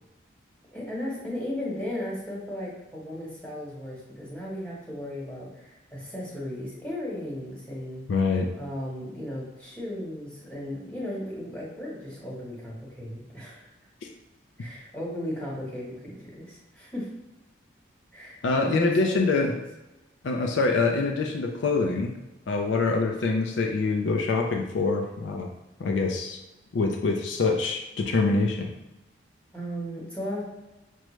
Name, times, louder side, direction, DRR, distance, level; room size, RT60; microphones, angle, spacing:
voice 1, 0.7-8.0 8.6-13.7 14.6-17.1 18.1-19.6 29.5-30.4, left 1 dB, 5° left, -6 dB, 1.1 m, -36 dB
voice 2, 8.1-8.5 18.4-19.5 20.2-22.1 22.5-25.5 25.8-26.4 26.7-28.7, left 3 dB, 75° left, 3 dB, 0.4 m, -25 dB
5.9 x 2.1 x 3.1 m, 1.0 s
head